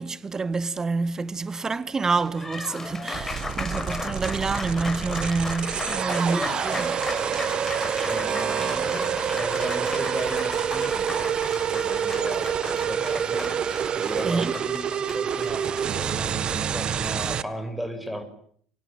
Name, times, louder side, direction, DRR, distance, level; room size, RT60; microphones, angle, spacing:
voice 1, 0.0-6.9 14.2-14.6, right 4 dB, 25° right, 2.0 m, -27 dB
Applause, 2.0-16.7, left 3 dB, 15° left, 5.6 m, -36 dB
sound 1, 3.1-17.4, right 8 dB, 40° right, 1.8 m, -27 dB
voice 2, 6.1-6.9 8.0-13.6 14.0-18.2, equal, ahead, 6.5 m, -36 dB
27.5 x 24.5 x 8.7 m
figure-of-eight pair, 65°, 2 cm